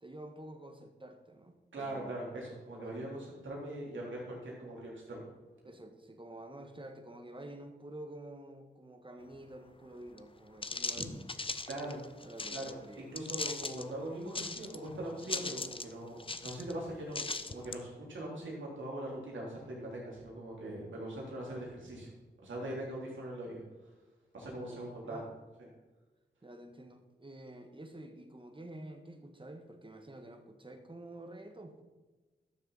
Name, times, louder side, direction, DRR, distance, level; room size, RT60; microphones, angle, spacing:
voice 1, 0.0-2.2 2.7-3.1 5.6-11.2 12.2-13.1 24.5-25.3 26.4-31.8, right 1 dB, 25° right, 6 dB, 1.5 m, -49 dB
voice 2, 1.7-5.3 10.9-11.2 11.6-12.1 12.5-17.2 17.5-22.1 22.4-23.9 24.3-25.2 25.6-25.7, right 1 dB, 80° right, -4 dB, 3.3 m, -41 dB
sound 1, 10.2-10.3 10.6-12.7 13.2-13.8 14.3-14.9 15.2-15.9 16.2-16.7 17.1-17.8, left 3 dB, 30° left, 0.7 m, -38 dB
12.5 x 6.8 x 4.1 m, 1.2 s
cardioid pair, 40°, 19 cm